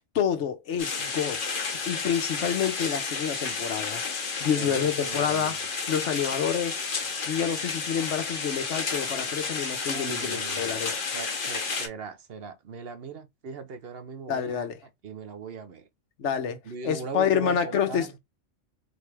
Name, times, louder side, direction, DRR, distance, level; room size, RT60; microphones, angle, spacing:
voice 1, 0.1-1.4 1.9-4.0 4.4-5.6 5.9-6.9 7.3-10.9 14.3-14.7 16.2-16.6 16.8-18.2, left 8 dB, 80° left, 1.2 m, -28 dB
sound 1, 0.8-11.9, left 4 dB, 50° left, 1.0 m, -31 dB
voice 2, 4.6-5.6 9.9-14.7 15.0-15.9 16.6-18.1, right 6 dB, 60° right, 0.9 m, -39 dB
4.1 x 3.2 x 3.3 m
omnidirectional pair, 1.2 m